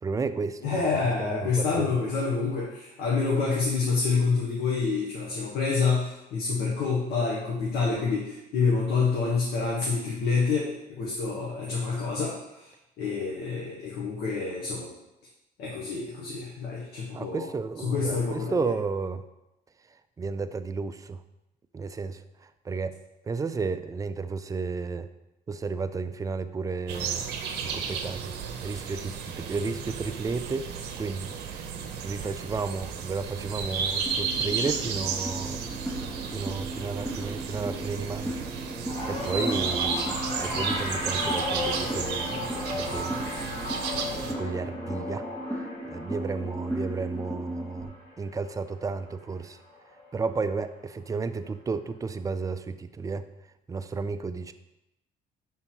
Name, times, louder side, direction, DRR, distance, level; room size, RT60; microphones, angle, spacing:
voice 1, 0.0-0.7 1.2-1.9 17.1-19.2 20.2-21.2 21.7-23.0 23.2-25.1 25.5-27.2 27.6-28.3 28.6-31.6 32.0-35.7 36.3-38.4 39.1-43.2 44.3-45.2 45.5-49.6 50.1-53.3 53.7-54.5, right 4 dB, 20° right, 11 dB, 0.3 m, -33 dB
voice 2, 0.6-12.7 13.0-14.9 15.6-17.5 17.8-18.7, left 4 dB, 75° left, -3 dB, 1.1 m, -27 dB
sound 1, 26.9-44.3, right 6 dB, 75° right, 0.7 m, -33 dB
sound 2, 34.0-47.8, equal, 10° left, 0.9 m, -37 dB
sound 3, 38.9-49.3 49.7-50.1 51.2-51.3, left 2 dB, 35° left, 1.8 m, -36 dB
5.8 x 3.8 x 4.5 m, 0.93 s
cardioid pair, 110°, 17 cm